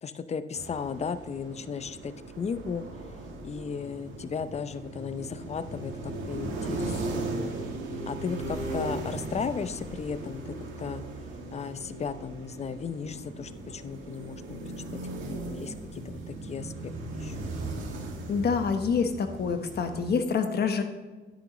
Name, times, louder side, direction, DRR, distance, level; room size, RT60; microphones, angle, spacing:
voice 1, 0.0-2.9 3.4-7.2 8.1-11.0 11.5-14.6 14.9-17.4, left 6 dB, 35° left, 12 dB, 0.6 m, -35 dB
sound 1, 0.6-20.1, right 2 dB, 80° right, 2.1 m, -37 dB
voice 2, 18.3-20.8, left 5 dB, 55° left, 7 dB, 1.2 m, -27 dB
10.5 x 9.0 x 3.1 m, 1.3 s
cardioid pair, 90°, 20 cm